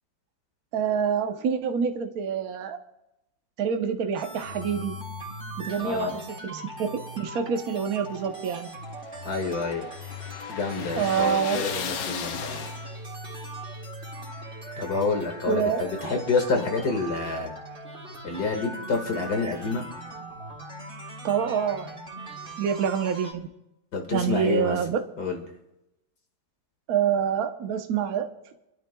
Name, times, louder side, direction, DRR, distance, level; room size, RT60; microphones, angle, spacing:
voice 1, 0.7-2.8 3.6-5.0 5.6-8.7 10.9-11.6 15.5-15.8 21.2-21.9 22.6-23.5 24.1-25.0 26.9-28.3, right 7 dB, 60° right, 6 dB, 1.2 m, -26 dB
sound 1, 4.2-23.3, right 1 dB, 35° right, 3.3 m, -40 dB
voice 2, 5.8-6.2 9.2-9.9 10.5-12.7 14.8-17.5 18.2-19.9 23.9-24.8 25.2-25.4, left 4 dB, 60° left, 3 dB, 2.3 m, -28 dB
sound 2, 7.7-13.2, left 8 dB, 80° left, 1.4 m, -36 dB
30.0 x 12.5 x 2.3 m, 0.88 s
omnidirectional pair, 2.0 m